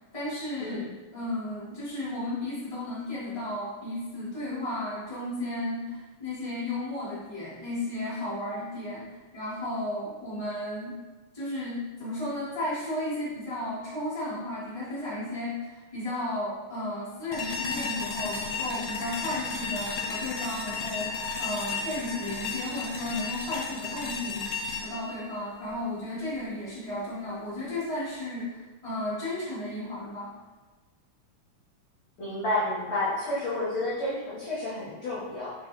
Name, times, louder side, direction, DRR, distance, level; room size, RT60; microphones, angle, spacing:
voice 1, 0.1-0.8 1.1-11.0 11.3-30.3, left 1 dB, 35° left, -10 dB, 0.5 m, -34 dB
sound 1, 17.3-26.4, left 4 dB, 85° left, 2.0 m, -34 dB
voice 2, 32.2-35.5, left 1 dB, 60° left, -11 dB, 1.7 m, -30 dB
6.3 x 2.3 x 3.1 m, 1.2 s
omnidirectional pair, 3.4 m